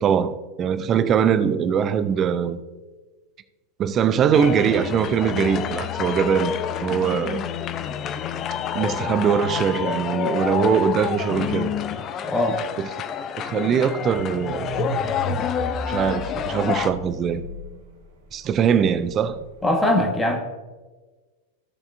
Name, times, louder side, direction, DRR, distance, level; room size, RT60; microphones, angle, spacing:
voice 1, 0.0-2.6 3.8-6.5 6.8-7.4 8.7-11.7 12.8-12.9 13.4-14.7 15.9-17.4 18.3-19.4, right 7 dB, 30° right, 0.6 m, -22 dB
sound 1, 4.3-16.9, left 8 dB, 30° left, 0.5 m, -28 dB
voice 2, 12.2-12.6 19.6-20.4, left 1 dB, 10° left, 1.4 m, -21 dB
sound 2, 14.1-19.7, right 2 dB, 60° right, 2.1 m, -35 dB
15.0 x 6.9 x 2.6 m
figure-of-eight pair, 90°, 0 cm